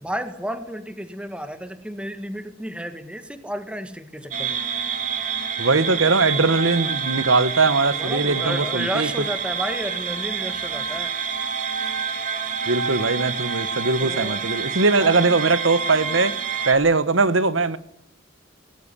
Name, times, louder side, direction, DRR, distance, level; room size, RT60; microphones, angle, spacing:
voice 1, 0.0-4.6 7.9-11.3 14.0-14.4 15.0-15.2, equal, 5° right, 1.8 m, -32 dB
sound 1, 4.3-16.7, right 6 dB, 40° right, 2.9 m, -27 dB
voice 2, 5.6-9.1 12.6-16.3 16.6-17.8, right 3 dB, 85° right, 1.4 m, -20 dB
19.0 x 17.5 x 9.9 m
head